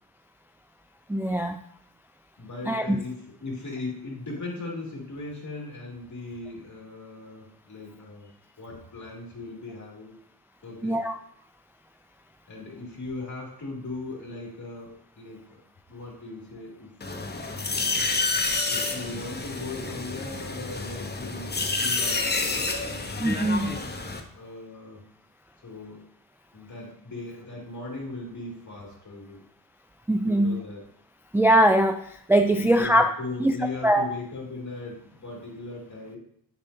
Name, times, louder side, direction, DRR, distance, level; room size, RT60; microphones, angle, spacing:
voice 1, 1.1-1.6 2.7-3.0 10.8-11.2 23.2-23.8 30.1-30.6 31.3-33.1 33.4-33.5 33.8-34.1, right 1 dB, 5° right, 6 dB, 0.3 m, -21 dB
voice 2, 2.4-10.1 10.6-11.0 12.5-15.6 15.9-17.0 18.7-22.7 24.3-25.0 25.6-26.1 26.5-29.4 30.2-30.8 32.5-36.2, left 2 dB, 50° left, -3 dB, 2.4 m, -38 dB
sound 1, 17.0-24.2, left 3 dB, 25° left, 0.8 m, -29 dB
7.2 x 5.2 x 2.6 m, 0.67 s
cardioid pair, 65°, 38 cm